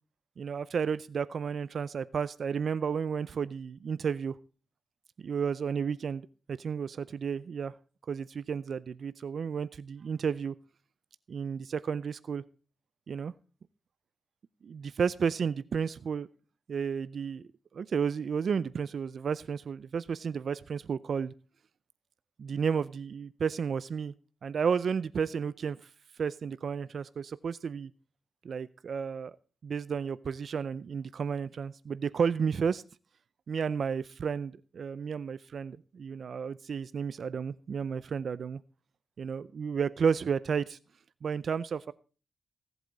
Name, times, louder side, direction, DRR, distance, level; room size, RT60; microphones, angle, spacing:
voice 1, 0.4-4.4 5.2-7.7 8.1-10.5 11.3-12.4 13.1-13.3 14.6-16.3 16.7-17.4 17.7-21.3 22.4-24.1 24.4-25.8 26.2-27.9 28.4-29.4 29.6-32.8 33.5-38.6 39.2-40.8 41.2-41.9, right 6 dB, 65° right, 17 dB, 0.5 m, -32 dB
17.0 x 8.0 x 3.9 m, 0.36 s
cardioid pair, 95°, 0 cm